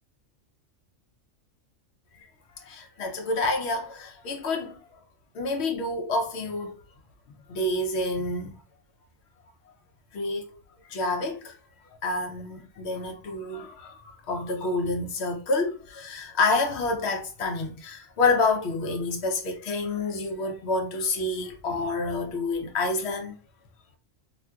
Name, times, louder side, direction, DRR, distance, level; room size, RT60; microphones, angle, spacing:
voice 1, 2.6-4.8 5.3-6.8 7.5-8.6 10.1-10.5 10.8-11.6 12.0-23.3, left 3 dB, 65° left, 0.8 m, -28 dB
3.7 x 2.5 x 2.2 m
omnidirectional pair, 1.3 m